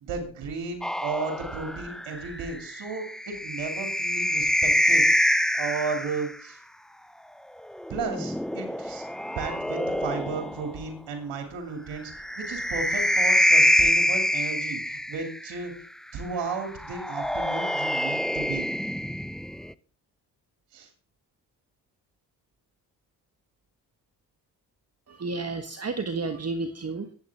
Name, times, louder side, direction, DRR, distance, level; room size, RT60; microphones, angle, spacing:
voice 1, 0.0-6.6 7.9-9.0 9.4-15.7 16.1-18.7 20.7-20.9, right 4 dB, 65° right, 4 dB, 2.6 m, -34 dB
sound 1, 0.8-6.3 7.7-10.7 12.1-15.5 16.8-19.7, equal, ahead, 0.5 m, -26 dB
voice 2, 25.1-27.1, right 3 dB, 30° right, 8 dB, 1.3 m, -31 dB
23.5 x 8.4 x 3.5 m, 0.40 s
hypercardioid pair, 45°, 46 cm